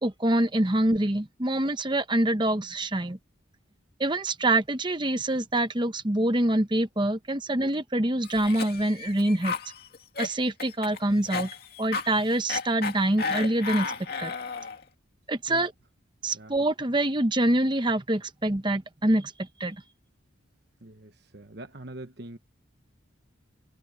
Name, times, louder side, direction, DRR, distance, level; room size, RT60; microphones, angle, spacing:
voice 1, 0.0-3.2 4.0-9.6 10.2-11.5 11.8-13.9 14.2-14.3 15.3-15.7 16.2-19.8, right 1 dB, 25° right, 1.0 m, -25 dB
Cough, 8.2-14.8, left 5 dB, 50° left, 2.6 m, -34 dB
voice 2, 20.8-22.4, right 2 dB, 55° right, 1.1 m, -43 dB
head